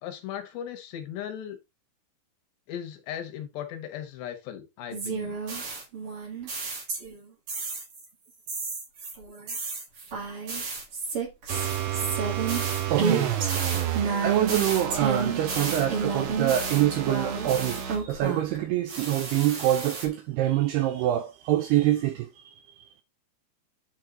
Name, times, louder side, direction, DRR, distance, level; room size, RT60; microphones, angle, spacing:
voice 1, 0.0-1.6 2.7-5.4, left 10 dB, 70° left, 3.2 m, -37 dB
sound 1, 4.9-7.2 7.5-8.0 8.5-18.6 18.9-20.1, right 4 dB, 45° right, 2.0 m, -31 dB
sound 2, 11.5-18.1, right 10 dB, 70° right, 3.6 m, -31 dB
voice 2, 12.9-13.7 14.2-22.6, right 13 dB, 85° right, 2.3 m, -26 dB
10.5 x 4.4 x 3.9 m
omnidirectional pair, 5.4 m